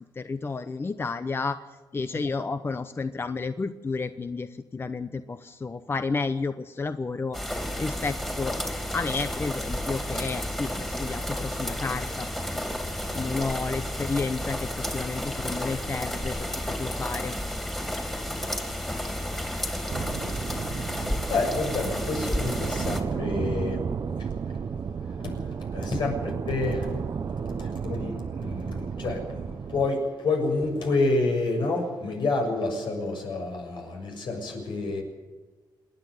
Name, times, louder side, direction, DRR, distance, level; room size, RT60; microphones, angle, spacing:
voice 1, 0.2-1.6 1.9-8.6 8.9-12.3 13.1-17.3, left 4 dB, 30° left, 10 dB, 0.8 m, -31 dB
sound 1, 7.3-23.0, left 1 dB, 5° left, 3.0 m, -32 dB
sound 2, 19.9-29.9, right 6 dB, 45° right, 0.8 m, -32 dB
voice 2, 21.3-23.8 24.2-24.6 25.0-27.0 27.5-35.0, left 3 dB, 75° left, 2 dB, 7.1 m, -29 dB
27.5 x 10.5 x 9.6 m, 1.3 s
wide cardioid pair, 130°, 8 cm